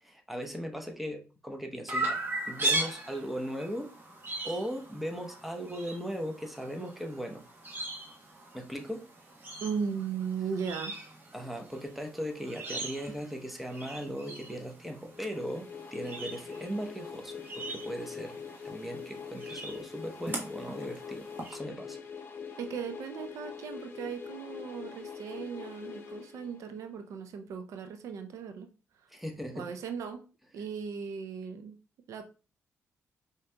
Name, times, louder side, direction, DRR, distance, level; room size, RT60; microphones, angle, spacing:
voice 1, 0.0-2.2 2.5-3.9 4.4-7.4 8.5-9.1 11.3-22.0 29.1-29.7, equal, ahead, 3 dB, 0.8 m, -38 dB
Chirp tweet, 1.9-21.5, right 2 dB, 40° right, 1.1 m, -39 dB
voice 2, 9.6-11.0 22.6-28.7 28.9-29.1 29.5-30.3 30.5-31.8 32.1-32.3, right 6 dB, 80° right, 7 dB, 0.5 m, -37 dB
sound 1, 15.1-26.9, left 6 dB, 45° left, 0.7 m, -44 dB
5.0 x 2.8 x 2.2 m, 0.34 s
cardioid pair, 75°, 5 cm